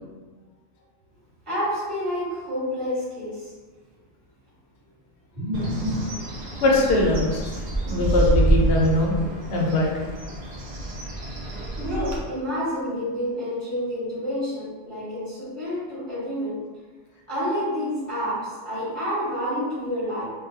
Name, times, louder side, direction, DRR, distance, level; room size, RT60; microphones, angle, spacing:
voice 1, 1.5-3.5 5.3-6.0 11.8-16.6 17.3-20.3, equal, 25° right, -10 dB, 1.1 m, -28 dB
Bird, 5.5-12.2, right 1 dB, 75° right, 0.3 m, -27 dB
voice 2, 6.6-7.6 7.9-9.2 9.5-9.9, left 2 dB, 65° left, -2 dB, 0.8 m, -21 dB
2.4 x 2.1 x 2.7 m, 1.3 s
omnidirectional pair, 1.4 m